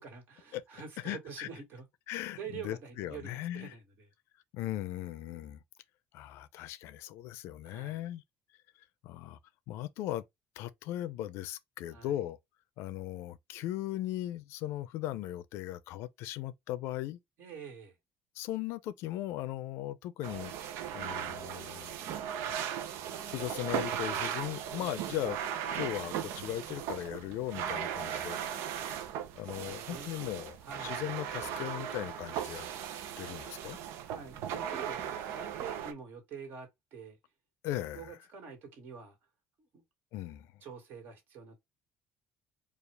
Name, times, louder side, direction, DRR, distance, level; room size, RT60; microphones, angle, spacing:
voice 1, 0.0-4.1 7.7-8.0 11.9-12.2 17.4-18.0 24.8-24.9 29.5-30.1 30.6-31.0 34.0-35.1 35.3-37.2 37.9-39.2 39.7-39.8 40.6-41.6, right 6 dB, 55° right, 2.0 m, -46 dB
voice 2, 1.0-1.5 2.1-3.7 4.5-5.6 6.1-8.2 9.0-9.4 9.7-10.2 10.6-12.4 12.8-17.2 18.4-20.5 20.9-22.2 22.5-22.6 23.2-25.4 25.7-28.4 29.3-32.7 33.2-33.8 37.6-38.2 40.1-40.6, left 13 dB, 75° left, 0.5 m, -38 dB
sound 1, 20.2-35.9, right 9 dB, 80° right, 0.7 m, -37 dB
4.7 x 2.5 x 3.3 m
cardioid pair, 160°, 4 cm